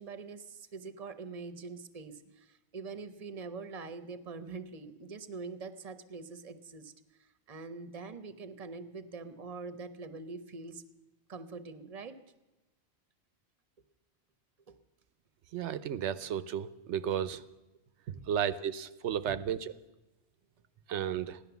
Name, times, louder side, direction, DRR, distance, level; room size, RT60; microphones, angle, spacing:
voice 1, 0.0-6.9 7.2-10.8 11.3-12.2 14.7-14.8 18.1-18.2 19.3-19.4, right 4 dB, 35° right, 11 dB, 0.9 m, -44 dB
voice 2, 15.5-17.4 18.1-19.7 20.9-21.4, right 9 dB, 90° right, 14 dB, 1.0 m, -33 dB
16.0 x 11.5 x 7.0 m, 1.1 s
omnidirectional pair, 1.2 m